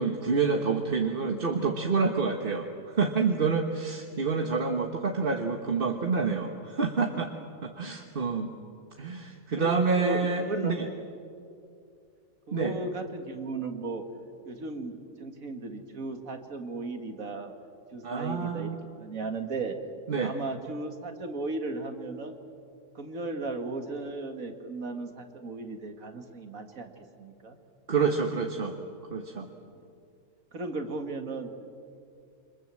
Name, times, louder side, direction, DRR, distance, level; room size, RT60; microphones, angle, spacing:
voice 1, 0.0-7.3 7.6-8.5 9.0-10.9 12.5-12.7 18.0-18.8 20.1-20.3 27.9-28.8 29.1-29.5, right 4 dB, 40° right, 3 dB, 1.4 m, -28 dB
voice 2, 9.5-10.8 12.5-14.0 14.5-17.5 17.9-19.8 20.2-22.4 22.9-26.9 27.2-27.6 29.7-29.9 30.5-31.5, right 3 dB, 60° right, 6 dB, 2.4 m, -36 dB
28.0 x 25.5 x 7.6 m, 2.5 s
omnidirectional pair, 1.6 m